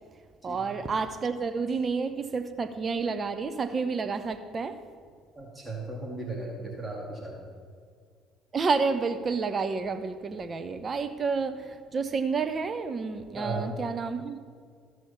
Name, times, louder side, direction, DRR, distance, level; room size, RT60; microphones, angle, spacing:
voice 1, 0.4-4.8 8.5-14.4, right 4 dB, 35° right, 11 dB, 0.9 m, -30 dB
voice 2, 5.4-7.5 13.3-13.7, right 2 dB, 15° right, -2 dB, 2.4 m, -36 dB
15.0 x 6.2 x 5.8 m, 2.1 s
hypercardioid pair, 60°, 0 cm